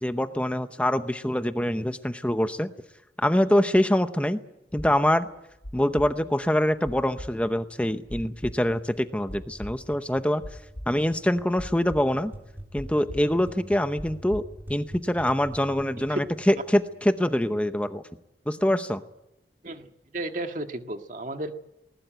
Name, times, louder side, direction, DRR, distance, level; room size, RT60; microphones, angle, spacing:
voice 1, 0.0-2.7 3.2-4.4 4.7-5.3 5.7-10.4 10.9-12.3 12.7-14.4 14.7-18.0 18.5-19.0, left 1 dB, 5° left, 9 dB, 0.8 m, -24 dB
sound 1, 4.7-13.3 13.6-15.2, equal, 85° left, 3.8 m, -41 dB
sound 2, 9.4-17.4, equal, 10° right, 3.7 m, -46 dB
voice 2, 19.6-21.5, right 1 dB, 45° right, 6 dB, 1.8 m, -33 dB
20.5 x 19.5 x 9.0 m, 0.88 s
head